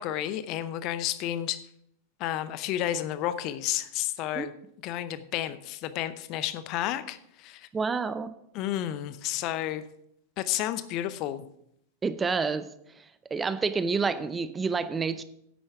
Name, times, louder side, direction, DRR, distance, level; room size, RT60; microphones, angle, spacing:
voice 1, 0.0-1.7 2.2-4.5 4.8-7.7 8.5-9.8 10.4-11.5, left 12 dB, 40° left, 13 dB, 0.7 m, -31 dB
voice 2, 7.7-8.3 12.0-12.7 13.0-13.1 13.3-15.2, right 5 dB, 15° right, 13 dB, 0.6 m, -28 dB
10.5 x 8.7 x 4.7 m, 0.73 s
figure-of-eight pair, 90°, 0 cm